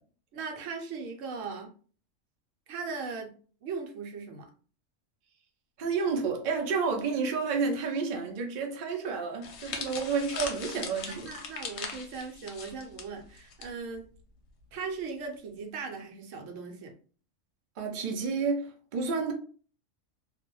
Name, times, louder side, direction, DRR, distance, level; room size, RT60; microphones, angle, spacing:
voice 1, 0.3-1.7 2.7-3.3 3.6-4.5 9.7-9.9 11.1-14.0 14.7-16.9, right 4 dB, 75° right, 0.9 m, -38 dB
voice 2, 5.8-11.3 17.8-19.3, right 5 dB, 55° right, 0.5 m, -30 dB
sound 1, 9.4-13.7 13.9-14.2 15.1-15.3, left 5 dB, 65° left, 0.8 m, -40 dB
2.3 x 2.1 x 2.9 m
omnidirectional pair, 1.4 m